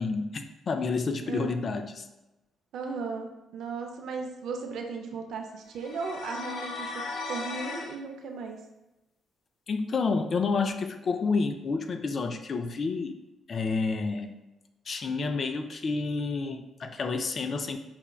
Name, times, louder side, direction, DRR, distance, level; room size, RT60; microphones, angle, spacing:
voice 1, 0.0-2.1 9.7-13.2 13.5-14.4 14.9-17.8, left 4 dB, 45° left, 7 dB, 0.3 m, -29 dB
voice 2, 2.7-7.0 7.3-8.6, right 4 dB, 75° right, 3 dB, 0.4 m, -36 dB
sound 1, 5.8-7.9, left 3 dB, 80° left, 0.7 m, -36 dB
5.7 x 2.1 x 2.3 m, 0.98 s
cardioid pair, 90°, 0 cm